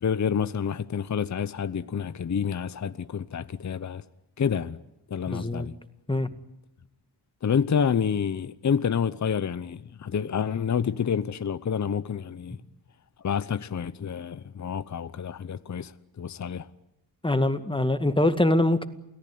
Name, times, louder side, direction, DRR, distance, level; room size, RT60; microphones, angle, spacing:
voice 1, 0.0-4.0 4.4-4.8 5.1-5.8 7.4-12.6 13.2-16.7, left 7 dB, 40° left, 0.9 m, -28 dB
voice 2, 5.3-5.7 6.1-6.3 17.2-18.9, left 1 dB, 10° left, 2.0 m, -23 dB
29.0 x 18.5 x 9.4 m
cardioid pair, 90°, 42 cm